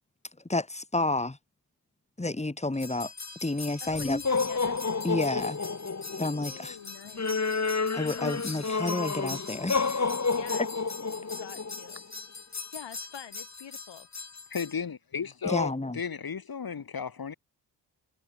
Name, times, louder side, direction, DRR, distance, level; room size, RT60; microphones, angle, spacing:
voice 1, 0.5-1.4 2.2-3.1 3.4-4.2 5.0-5.6 6.2-6.8 7.9-10.1 15.4-16.0, left 2 dB, 15° left, 2.8 m, -30 dB
sound 1, 2.8-14.7, left 4 dB, 40° left, 3.5 m, -31 dB
voice 2, 3.8-4.8 6.3-7.5 10.3-10.7 11.1-12.0 12.7-14.1, left 8 dB, 80° left, 3.6 m, -46 dB
voice 3, 14.5-17.3, left 6 dB, 55° left, 2.8 m, -34 dB
cardioid pair, 55°, 43 cm